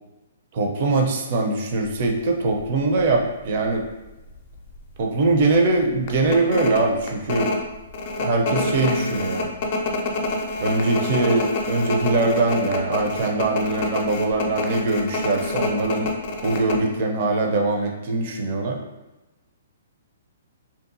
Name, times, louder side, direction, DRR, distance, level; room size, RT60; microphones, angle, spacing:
voice 1, 0.5-3.9 5.0-7.5 8.2-9.5 10.6-16.1 16.4-18.8, right 3 dB, 50° right, 2 dB, 0.5 m, -22 dB
sound 1, 1.8-2.0 2.6-2.7 3.0-3.9 4.3-4.4 4.7-5.0 5.4-5.5 6.1-16.9, left 2 dB, 45° left, 0.4 m, -27 dB
2.7 x 2.3 x 2.6 m, 1.1 s
hypercardioid pair, 125°, 0 cm